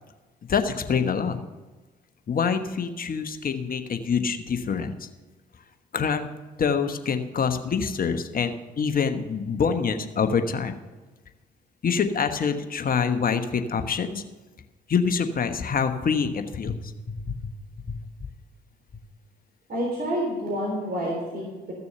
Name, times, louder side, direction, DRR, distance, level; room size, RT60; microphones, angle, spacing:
voice 1, 0.5-1.4 2.3-4.9 5.9-6.3 6.6-10.7 11.8-14.2 14.9-17.4 17.9-18.0, left 6 dB, 45° left, 8 dB, 1.1 m, -26 dB
voice 2, 19.7-21.7, equal, 45° right, -3 dB, 3.7 m, -28 dB
14.0 x 6.8 x 6.8 m, 1.2 s
hypercardioid pair, 50°, 21 cm